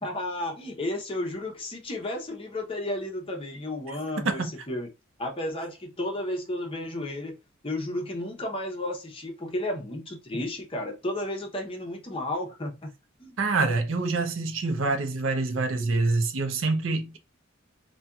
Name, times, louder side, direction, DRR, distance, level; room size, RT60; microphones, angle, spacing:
voice 1, 0.0-4.9 5.2-7.4 7.6-12.9 13.2-13.3, left 1 dB, 25° left, 0.7 m, -33 dB
voice 2, 13.4-17.2, right 3 dB, 70° right, 0.6 m, -26 dB
4.1 x 2.2 x 2.3 m
head